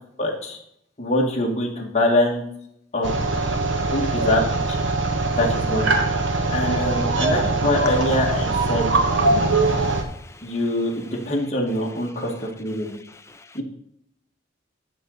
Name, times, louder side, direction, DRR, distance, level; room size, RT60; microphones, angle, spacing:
voice 1, 0.2-0.6 1.0-2.4 2.9-3.1 3.9-4.4 4.7-4.8 5.4-5.9 6.5-9.0 10.4-12.9 13.5-13.6, left 1 dB, 35° left, -1 dB, 1.9 m, -24 dB
sound 1, 3.0-10.0, right 3 dB, 85° right, 1.4 m, -22 dB
voice 2, 9.3-10.5 13.3-13.6, left 3 dB, 15° left, 7 dB, 0.6 m, -48 dB
11.5 x 4.0 x 6.5 m, 0.73 s
head